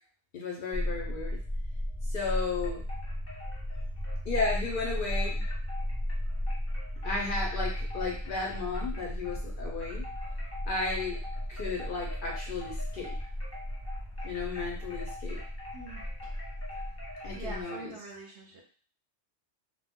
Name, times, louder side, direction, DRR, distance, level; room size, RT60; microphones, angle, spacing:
voice 1, 0.3-1.4 2.0-2.8 4.3-5.4 7.0-10.0 10.7-11.2 11.5-13.1 14.2-15.4 17.2-17.9, left 3 dB, 60° left, -1 dB, 0.6 m, -34 dB
sound 1, 0.7-17.6, equal, 35° right, 0.4 m, -35 dB
sound 2, 2.3-9.5 9.8-17.9, left 2 dB, 15° left, 0.7 m, -46 dB
voice 2, 15.7-16.4 17.3-18.6, right 4 dB, 60° right, -1 dB, 0.8 m, -45 dB
2.1 x 2.1 x 3.4 m, 0.43 s
omnidirectional pair, 1.2 m